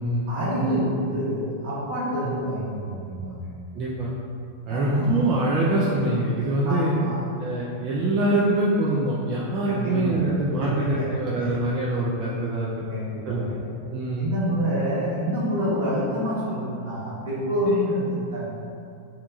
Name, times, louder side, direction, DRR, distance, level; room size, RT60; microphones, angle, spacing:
voice 1, 0.3-3.4 4.7-5.3 6.6-7.2 9.7-10.3 10.6-10.7 11.0-11.1 11.4-11.6 12.9-13.6 14.2-18.4, equal, 60° right, -8 dB, 1.1 m, -27 dB
voice 2, 3.7-4.1 4.7-6.9 7.4-12.7 13.3-13.6 13.9-14.3, right 1 dB, 35° right, -6 dB, 0.4 m, -24 dB
2.8 x 2.2 x 3.7 m, 2.5 s
figure-of-eight pair, 90°, 0 cm